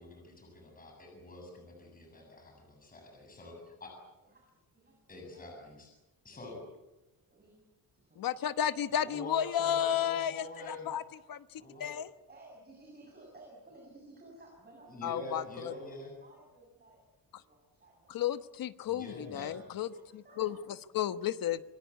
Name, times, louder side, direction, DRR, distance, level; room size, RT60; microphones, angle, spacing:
voice 1, 0.0-3.9 5.1-5.9 6.2-6.6 8.9-10.9 11.6-11.9 14.9-16.1 18.9-19.6, left 2 dB, 25° left, 1 dB, 7.5 m, -46 dB
voice 2, 4.2-5.0 5.3-5.6 7.3-7.5 7.9-8.4 9.8-10.0 12.3-15.9 16.2-17.0 17.3-18.4 19.8-20.6, right 2 dB, 25° right, -1 dB, 7.3 m, -57 dB
voice 3, 8.2-11.0 11.3-11.4 11.8-12.1 15.0-15.7 18.1-19.9 20.4-20.6 20.9-21.6, left 10 dB, 65° left, 12 dB, 1.2 m, -32 dB
27.5 x 22.0 x 8.3 m, 1.0 s
wide cardioid pair, 160°, 37 cm